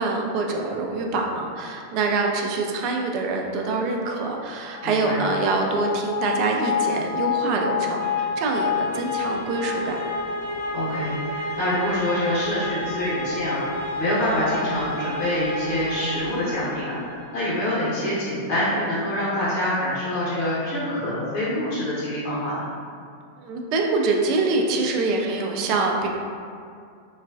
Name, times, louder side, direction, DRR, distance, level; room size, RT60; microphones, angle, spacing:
voice 1, 0.0-10.0 23.4-26.1, right 3 dB, 40° right, 1 dB, 0.4 m, -25 dB
sound 1, 4.6-17.4, left 4 dB, 90° left, 0.7 m, -29 dB
voice 2, 4.8-5.2 10.7-13.6 14.0-22.7, left 1 dB, 55° left, -9 dB, 1.0 m, -26 dB
3.9 x 2.2 x 2.4 m, 2.3 s
figure-of-eight pair, 90°, 0 cm